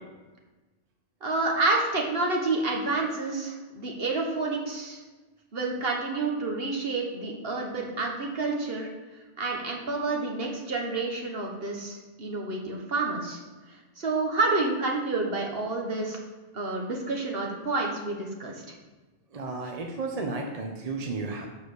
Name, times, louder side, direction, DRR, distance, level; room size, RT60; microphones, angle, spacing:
voice 1, 1.2-5.0 5.5-8.9 9.4-13.4 14.0-16.2 16.5-18.5, right 3 dB, 55° right, 0 dB, 1.5 m, -29 dB
voice 2, 19.3-21.5, right 3 dB, 35° right, 1 dB, 0.8 m, -33 dB
6.3 x 5.0 x 6.7 m, 1.2 s
omnidirectional pair, 1.2 m